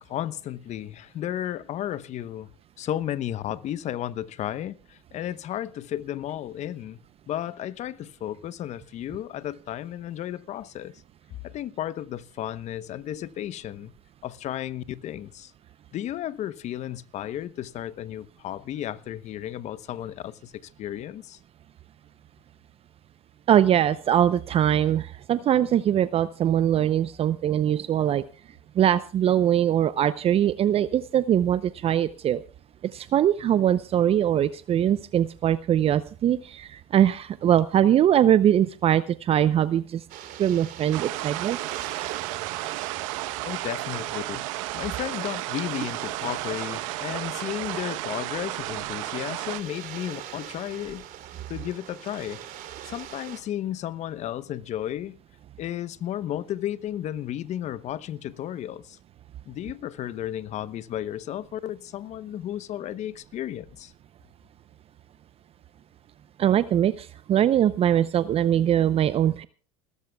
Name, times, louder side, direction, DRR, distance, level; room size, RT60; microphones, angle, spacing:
voice 1, 0.0-2.5 2.8-7.0 7.3-11.0 11.4-13.9 14.2-15.5 15.9-21.4 43.4-44.5 44.7-51.1 51.5-52.4 52.8-55.2 55.6-59.0 59.5-63.9, left 12 dB, 40° left, 1.0 m, -33 dB
voice 2, 23.5-28.2 28.8-32.4 32.9-40.0 40.4-41.6 66.4-69.5, right 10 dB, 35° right, 0.7 m, -22 dB
sound 1, 40.1-53.4, right 11 dB, 55° right, 3.0 m, -43 dB
sound 2, 40.9-49.6, right 17 dB, 70° right, 1.0 m, -33 dB
28.5 x 13.5 x 2.3 m
supercardioid pair, 100°, 17 cm